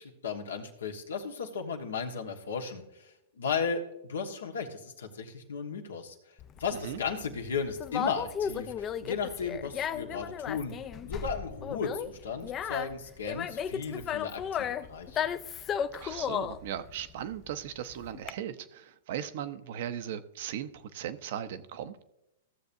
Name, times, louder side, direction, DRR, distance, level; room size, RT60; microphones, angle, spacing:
voice 1, 0.0-3.8 4.1-6.1 6.6-10.7 11.0-15.2, left 5 dB, 85° left, 4 dB, 1.3 m, -35 dB
Conversation, 6.4-18.3, left 8 dB, 25° left, 0.4 m, -35 dB
voice 2, 6.7-7.0 16.0-22.0, right 10 dB, 60° right, 11 dB, 0.7 m, -38 dB
15.5 x 7.0 x 2.6 m, 0.88 s
hypercardioid pair, 120°, 0 cm